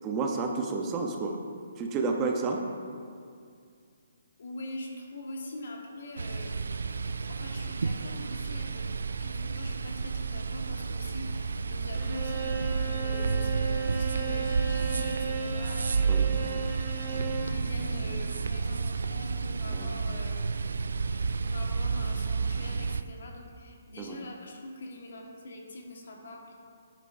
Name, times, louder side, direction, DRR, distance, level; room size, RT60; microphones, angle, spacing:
voice 1, 0.0-1.4 1.8-2.6 16.1-16.3 19.7-19.9 24.0-24.2, right 4 dB, 20° right, 2 dB, 0.7 m, -30 dB
voice 2, 4.4-6.6 7.3-8.9 9.2-20.8 21.4-26.5, left 2 dB, 65° left, 1 dB, 1.4 m, -43 dB
sound 1, 6.2-23.0, right 5 dB, 85° right, 0.3 m, -31 dB
Bowed string instrument, 11.9-17.6, right 5 dB, 45° right, 1.6 m, -36 dB
9.2 x 9.0 x 2.6 m, 2.3 s
hypercardioid pair, 155°, 0 cm